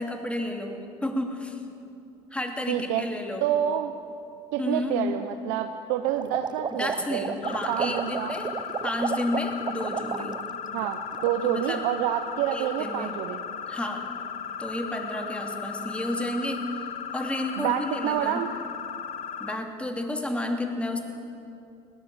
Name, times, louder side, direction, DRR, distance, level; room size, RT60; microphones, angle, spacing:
voice 1, 0.0-1.6 2.3-3.5 4.6-5.0 6.7-8.5 8.8-10.4 11.4-11.8 12.5-13.1 13.7-14.1 14.6-16.7 17.1-18.4 19.4-21.0, left 1 dB, 10° left, 3 dB, 2.9 m, -31 dB
voice 2, 2.7-3.1 3.4-3.9 4.5-7.3 7.7-8.3 10.7-13.4 17.6-18.5, right 11 dB, 85° right, 7 dB, 0.9 m, -28 dB
sound 1, 6.2-10.5 10.8-11.3, right 6 dB, 30° right, 0.9 m, -32 dB
sound 2, 7.4-19.6, left 7 dB, 60° left, 1.4 m, -36 dB
20.5 x 18.0 x 8.0 m, 2.7 s
supercardioid pair, 90°, 14 cm